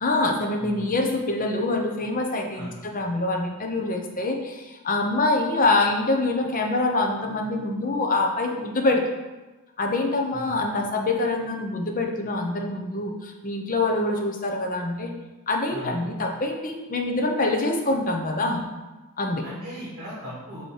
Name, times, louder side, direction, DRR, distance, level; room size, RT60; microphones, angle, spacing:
voice 1, 0.0-9.0 9.8-15.1 15.5-18.6 19.2-19.4, left 2 dB, 40° left, 2 dB, 0.8 m, -25 dB
voice 2, 0.6-0.9 2.5-2.7 10.3-10.8 15.7-16.0 19.4-20.6, equal, 45° right, -11 dB, 2.2 m, -38 dB
7.7 x 3.1 x 4.9 m, 1.1 s
head